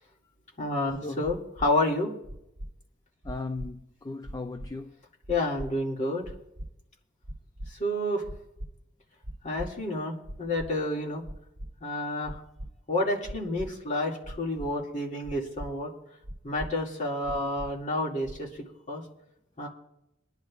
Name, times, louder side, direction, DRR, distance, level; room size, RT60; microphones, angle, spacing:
voice 1, 0.6-2.1 5.3-6.2 7.7-8.2 9.4-11.2 11.8-12.4 12.9-15.9 16.4-19.0 19.6-19.7, left 1 dB, 35° left, 2.2 m, -29 dB
sound 1, 1.2-1.7 2.2-2.7 3.2-3.7 4.2-4.7 5.2-5.7 6.2-6.7 7.2-7.7 8.2-8.7 9.2-9.7 10.2-10.7 11.2-11.7 12.2-12.7 13.2-13.7 14.2-14.7 15.2-15.7 16.2-16.7 17.2-17.7 18.2-18.6, right 1 dB, 55° right, 1.4 m, -39 dB
voice 2, 3.2-5.0 17.4-17.5, left 3 dB, 20° left, 0.4 m, -37 dB
24.0 x 10.5 x 2.4 m
head